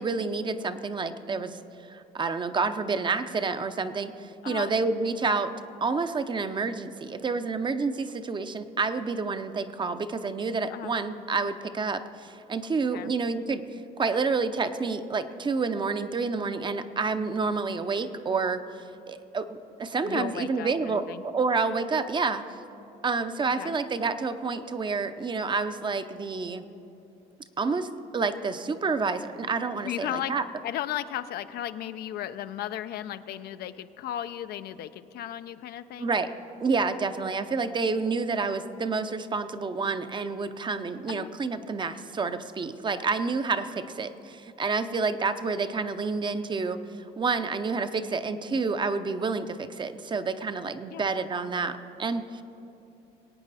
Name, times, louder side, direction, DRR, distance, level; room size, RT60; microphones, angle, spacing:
voice 1, 0.0-1.6 1.9-5.5 5.8-13.6 14.0-18.6 19.1-22.5 23.0-26.6 27.6-30.4 36.0-36.3 36.6-46.8 47.2-52.4, right 4 dB, 30° right, 10 dB, 0.6 m, -29 dB
voice 2, 20.0-21.2 23.5-23.7 29.8-30.3 30.6-36.1 41.1-41.3 50.9-51.1, left 11 dB, 70° left, 12 dB, 0.5 m, -35 dB
21.5 x 8.9 x 4.1 m, 2.8 s
cardioid pair, 110°, 17 cm